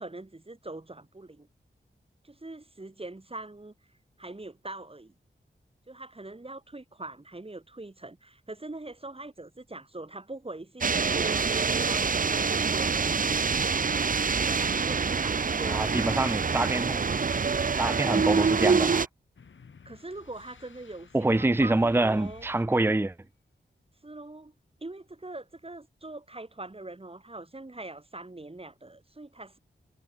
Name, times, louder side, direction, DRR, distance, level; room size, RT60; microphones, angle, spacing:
voice 1, 0.0-1.5 2.2-3.7 4.2-5.1 5.9-13.0 14.4-15.9 19.8-22.5 24.0-24.5 24.8-29.6, right 2 dB, 30° right, 8.0 m, -42 dB
sound 1, 10.8-19.1, right 5 dB, 45° right, 0.7 m, -26 dB
voice 2, 15.7-17.0 17.8-19.1 21.1-23.1, right 2 dB, 10° right, 0.7 m, -26 dB
sound 2, 19.4-23.2, left 5 dB, 80° left, 5.7 m, -53 dB
wide cardioid pair, 65°, 19 cm